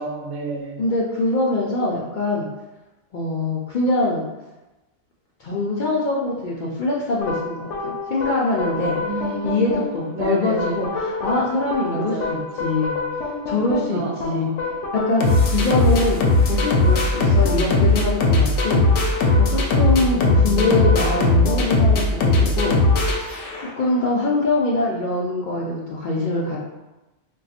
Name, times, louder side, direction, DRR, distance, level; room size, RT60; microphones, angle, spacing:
voice 1, 0.0-0.8 9.0-9.8 10.1-10.9 11.9-12.8 13.9-14.7 15.8-16.0 20.1-21.0, right 2 dB, 80° right, -1 dB, 0.9 m, -30 dB
voice 2, 0.8-2.5 3.1-4.2 5.4-9.0 9.4-13.0 13.5-14.5 14.9-15.3 15.5-16.2 16.5-18.8 19.4-22.7 23.8-26.6, left 2 dB, 60° left, -4 dB, 0.5 m, -23 dB
sound 1, 7.2-23.9, left 2 dB, 75° left, 0.9 m, -20 dB
3.9 x 2.3 x 2.4 m, 1.1 s
omnidirectional pair, 1.2 m